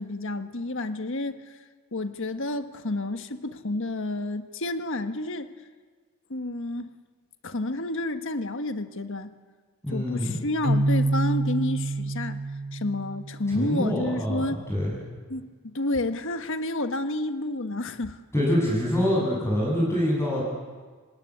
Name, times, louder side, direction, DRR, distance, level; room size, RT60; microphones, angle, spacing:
voice 1, 0.0-1.6 1.9-5.5 6.3-6.9 7.4-9.3 9.9-12.4 12.7-14.6 15.3-18.2, left 2 dB, 60° left, 9 dB, 1.5 m, -30 dB
voice 2, 9.8-10.4 13.5-14.9 18.3-20.4, equal, 10° left, -5 dB, 7.3 m, -25 dB
Keyboard (musical), 10.6-13.5, right 2 dB, 45° right, 2.3 m, -27 dB
27.0 x 17.0 x 9.6 m, 1.5 s
head